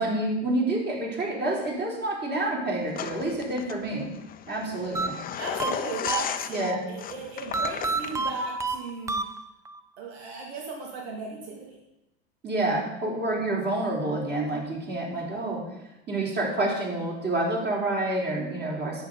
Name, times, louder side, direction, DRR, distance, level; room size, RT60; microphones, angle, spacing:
voice 1, 0.0-4.1 4.5-5.2 6.5-6.8 12.4-15.6 16.1-19.0, right 2 dB, 30° right, -3 dB, 3.9 m, -28 dB
sound 1, 2.9-8.5, left 9 dB, 25° left, 0.6 m, -36 dB
sound 2, 4.9-6.8 7.5-9.8, right 3 dB, 10° right, 0.3 m, -30 dB
voice 2, 5.4-9.2 10.0-11.8, right 3 dB, 75° right, -1 dB, 2.8 m, -36 dB
10.5 x 8.3 x 4.1 m, 0.94 s
hypercardioid pair, 105°, 33 cm